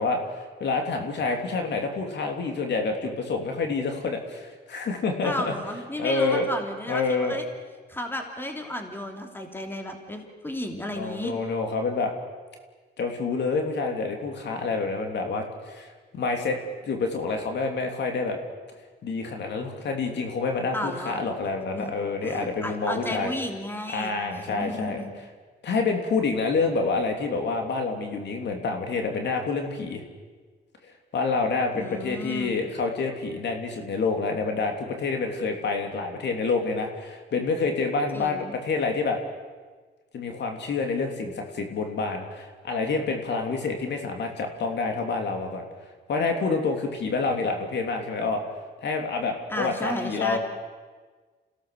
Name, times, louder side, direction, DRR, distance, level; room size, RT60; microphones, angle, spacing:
voice 1, 0.0-5.5 6.0-6.5 6.9-7.3 10.9-12.1 13.0-16.6 16.9-18.4 19.0-23.3 23.9-25.0 25.6-30.0 31.1-39.2 40.1-45.7 46.1-48.4 48.8-50.4, left 4 dB, 60° left, 3 dB, 3.3 m, -27 dB
voice 2, 5.2-7.5 7.9-11.3 20.7-21.2 21.7-21.9 22.2-25.1 31.7-32.5 38.1-38.5 49.5-50.4, left 1 dB, 10° left, 3 dB, 3.2 m, -33 dB
27.5 x 17.0 x 6.8 m, 1.4 s
cardioid pair, 90°, 20 cm